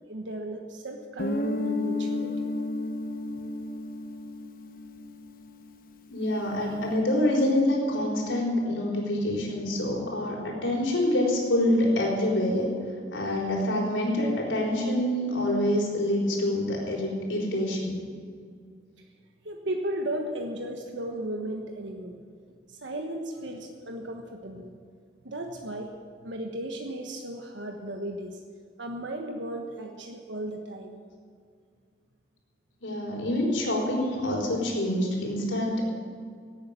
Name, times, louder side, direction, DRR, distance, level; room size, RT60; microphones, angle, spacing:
voice 1, 0.1-2.4 10.3-10.4 19.4-22.2 22.8-24.7 25.2-25.9 26.2-28.4 28.8-31.0, right 1 dB, 80° right, 3 dB, 1.3 m, -35 dB
Guitar, 1.2-5.8, left 2 dB, 50° left, 1.0 m, -32 dB
voice 2, 6.1-12.7 13.1-18.0 32.8-35.8, left 1 dB, 85° left, -2 dB, 4.3 m, -26 dB
16.5 x 8.9 x 8.9 m, 2.1 s
head